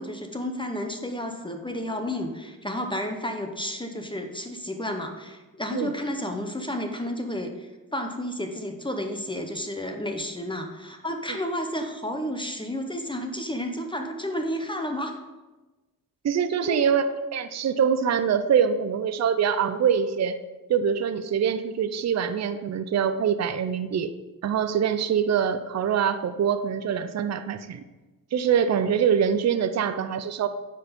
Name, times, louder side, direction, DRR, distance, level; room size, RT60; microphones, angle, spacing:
voice 1, 0.0-15.2 16.7-16.9, left 1 dB, 15° left, 4 dB, 0.8 m, -31 dB
voice 2, 16.2-20.4 20.7-24.1 24.4-27.8 28.3-30.5, right 7 dB, 45° right, 10 dB, 0.5 m, -24 dB
9.6 x 4.7 x 5.1 m, 1.2 s
wide cardioid pair, 115°, 37 cm